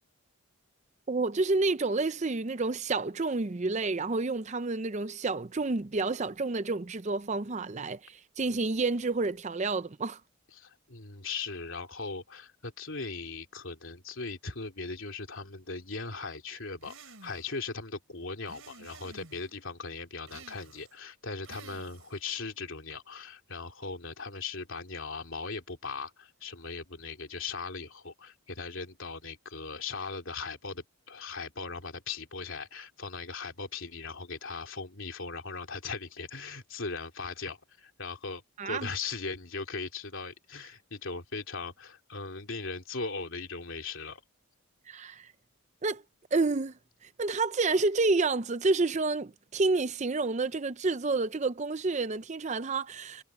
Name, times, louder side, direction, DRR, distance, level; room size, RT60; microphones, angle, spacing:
voice 1, 1.1-10.2 38.6-38.9 44.9-45.3 45.8-46.0 46.3-46.7 47.0-53.2, right 3 dB, 30° right, 0.5 m, -29 dB
voice 2, 10.5-44.2, left 4 dB, 60° left, 3.2 m, -39 dB
sound 1, 16.8-17.6 18.5-19.5 20.3-21.0 21.4-22.2, right 4 dB, 70° right, 4.4 m, -52 dB
head